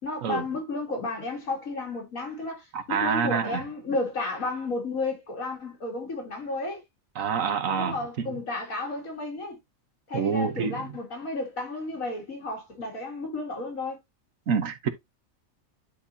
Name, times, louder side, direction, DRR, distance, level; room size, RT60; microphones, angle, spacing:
voice 1, 0.0-6.8 7.8-9.6 10.1-14.0, left 2 dB, 80° left, 3.0 m, -32 dB
voice 2, 2.7-3.6 7.2-8.4 10.1-10.9 14.5-14.9, right 6 dB, 75° right, 1.4 m, -27 dB
11.0 x 4.2 x 2.7 m
omnidirectional pair, 1.4 m